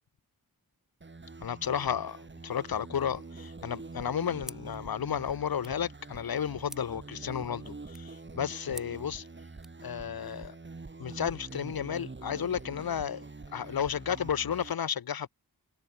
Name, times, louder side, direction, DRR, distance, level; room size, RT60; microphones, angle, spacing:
sound 1, 1.0-14.7, right 3 dB, 30° right, 1.2 m, -45 dB
voice 1, 1.4-9.3 9.8-10.6 11.0-15.3, left 8 dB, 75° left, 0.7 m, -33 dB
sound 2, 4.4-9.8, equal, ahead, 0.8 m, -51 dB
wide cardioid pair, 60°, 37 cm